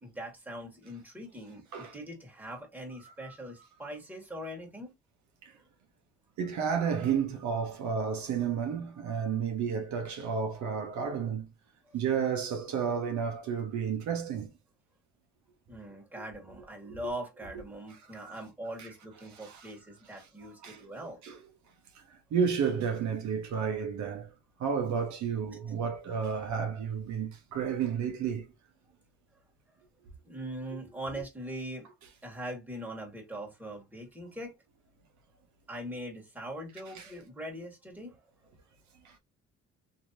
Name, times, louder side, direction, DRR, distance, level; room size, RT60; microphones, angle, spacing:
voice 1, 0.0-4.9 11.9-12.0 15.7-21.2 30.2-31.9 32.2-34.5 35.7-38.2, right 1 dB, 5° right, 1.5 m, -41 dB
voice 2, 6.4-11.5 11.9-14.5 18.2-18.4 18.8-18.9 19.4-19.7 20.6-20.8 21.2-21.3 22.3-24.3 24.6-28.5 37.0-37.1 39.0-39.1, right 7 dB, 70° right, 0.8 m, -31 dB
3.1 x 2.7 x 2.6 m
cardioid pair, 90°, 30 cm